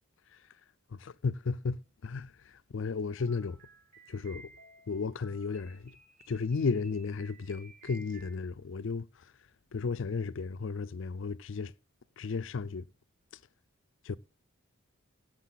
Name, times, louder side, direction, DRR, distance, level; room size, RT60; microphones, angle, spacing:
voice 1, 0.9-3.6 4.1-4.5 4.9-5.9 6.3-9.1 9.7-11.7 12.2-12.9 14.0-14.2, left 4 dB, 65° left, 0.4 m, -34 dB
Für Elise Music Box, 3.2-8.3, right 3 dB, 45° right, 6.0 m, -56 dB
15.0 x 6.6 x 4.0 m
head